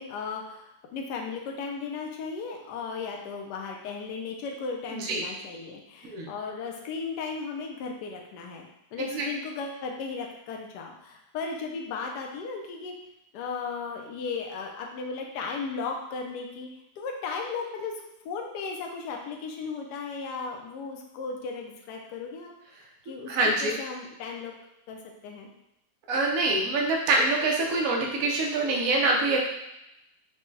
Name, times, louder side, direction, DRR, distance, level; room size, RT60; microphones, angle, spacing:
voice 1, 0.0-12.9 13.3-16.7 17.0-17.9 18.2-22.5 23.0-24.5 24.9-25.5, left 4 dB, 80° left, 1 dB, 1.2 m, -36 dB
voice 2, 23.3-23.7 26.1-29.4, right 2 dB, 65° right, -1 dB, 1.0 m, -25 dB
5.9 x 2.2 x 3.2 m, 0.87 s
omnidirectional pair, 1.8 m